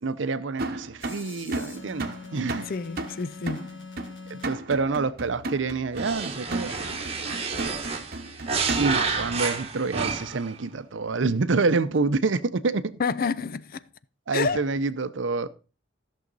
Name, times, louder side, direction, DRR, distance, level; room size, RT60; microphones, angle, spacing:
voice 1, 0.0-2.7 4.3-6.8 7.2-7.4 8.7-13.0 14.3-15.5, right 4 dB, 70° right, 0.7 m, -27 dB
sound 1, 0.6-9.2, right 2 dB, 50° right, 1.1 m, -35 dB
sound 2, 1.0-4.5, left 4 dB, 70° left, 2.8 m, -43 dB
voice 2, 2.6-3.9 13.0-13.8 14.3-14.7, left 5 dB, 50° left, 0.5 m, -29 dB
sound 3, 5.9-10.5, right 4 dB, 30° right, 1.4 m, -30 dB
14.0 x 6.5 x 4.0 m
head